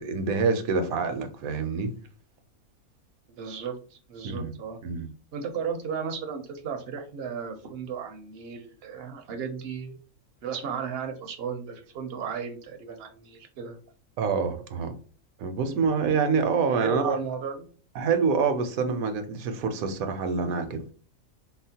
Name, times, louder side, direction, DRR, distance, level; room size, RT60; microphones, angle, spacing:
voice 1, 0.0-1.9 4.2-4.5 4.8-5.1 14.2-14.9 15.4-17.2 18.0-20.9, right 5 dB, 80° right, 1.0 m, -26 dB
voice 2, 3.3-4.8 5.3-10.0 10.4-13.8 16.8-17.7, right 6 dB, 60° right, 0.7 m, -34 dB
4.2 x 2.0 x 2.7 m
omnidirectional pair, 1.5 m